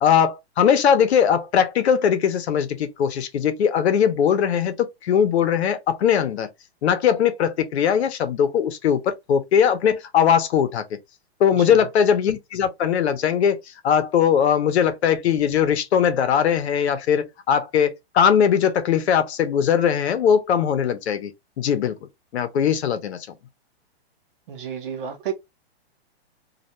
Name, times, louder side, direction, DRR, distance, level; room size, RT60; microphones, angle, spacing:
voice 1, 0.0-6.5 6.8-10.8 11.4-21.3 21.6-22.0 22.3-23.2, left 8 dB, 80° left, 0.7 m, -20 dB
voice 2, 24.5-25.3, right 8 dB, 55° right, 0.8 m, -31 dB
2.3 x 2.2 x 2.9 m
hypercardioid pair, 160°, 32 cm